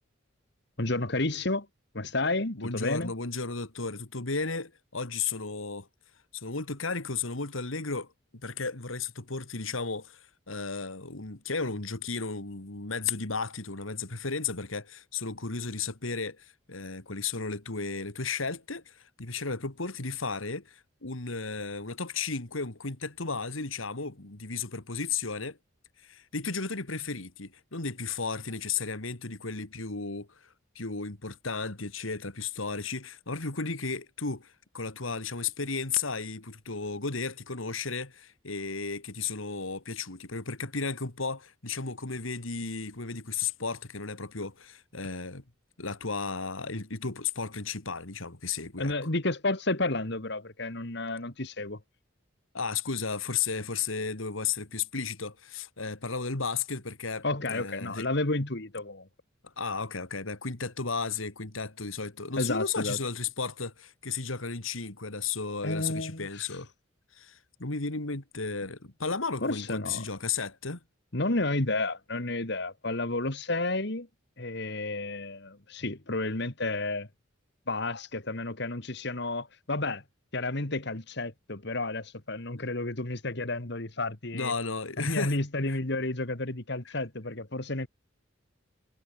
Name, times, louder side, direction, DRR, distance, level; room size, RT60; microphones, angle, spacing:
voice 1, 0.8-1.7 1.9-3.1 48.8-51.8 57.2-59.1 62.4-63.0 65.6-66.5 69.4-70.0 71.1-74.1 74.4-77.1 77.7-80.0 80.3-84.5 85.0-87.9, left 2 dB, 60° left, 2.4 m, -31 dB
voice 2, 2.5-5.9 6.3-8.1 8.4-25.6 26.0-45.4 45.8-48.9 52.5-57.2 57.5-58.1 59.4-66.7 67.1-70.8 84.3-85.4, left 4 dB, 85° left, 2.5 m, -34 dB
head